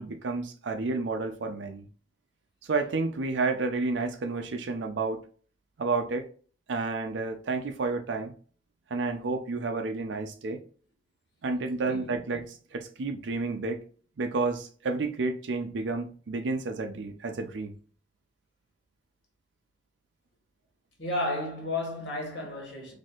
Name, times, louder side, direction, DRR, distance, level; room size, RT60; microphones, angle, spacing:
voice 1, 0.0-1.9 2.6-5.2 5.8-6.3 6.7-8.3 8.9-10.6 11.4-13.8 14.2-17.7, right 3 dB, 90° right, 0.5 m, -30 dB
voice 2, 11.8-12.1 21.0-22.9, left 2 dB, 75° left, 1.5 m, -32 dB
4.2 x 2.6 x 2.4 m
head